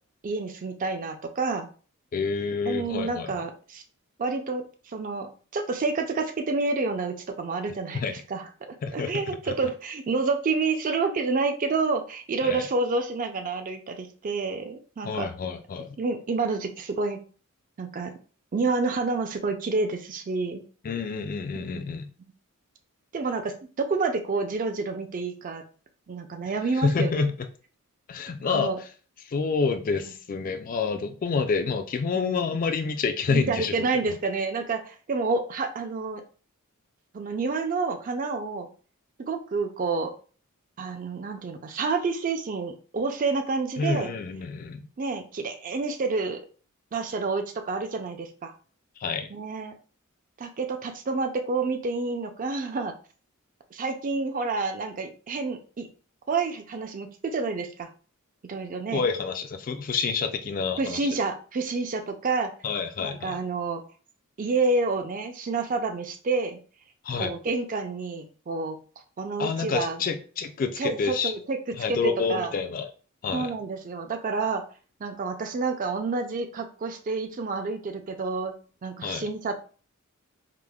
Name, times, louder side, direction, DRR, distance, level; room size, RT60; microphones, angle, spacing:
voice 1, 0.2-1.7 2.7-3.8 4.2-15.3 16.0-17.2 17.8-18.1 18.5-20.6 21.7-21.8 22.2-22.3 23.1-25.6 26.1-27.2 28.5-28.8 32.1-32.5 33.3-36.2 37.1-38.7 39.2-40.1 40.8-44.1 45.0-46.4 46.9-48.5 49.3-49.7 50.4-52.9 53.7-55.9 56.3-57.9 58.4-59.0 60.8-62.5 63.0-63.8 64.4-66.6 67.2-68.8 69.2-70.0 70.8-72.5 73.3-74.6 75.0-78.5 78.8-79.6, right 3 dB, 40° right, 6 dB, 0.4 m, -29 dB
voice 2, 2.1-3.3 7.9-8.1 8.8-9.4 12.4-12.6 15.0-16.0 20.8-22.1 26.7-27.3 28.1-28.7 29.2-33.7 43.8-44.9 49.0-49.3 58.9-61.1 62.6-63.4 67.0-67.3 69.4-71.3 71.8-72.9 73.2-73.5 79.0-79.2, left 5 dB, 40° left, 7 dB, 0.3 m, -28 dB
4.9 x 2.1 x 2.2 m, 0.39 s
head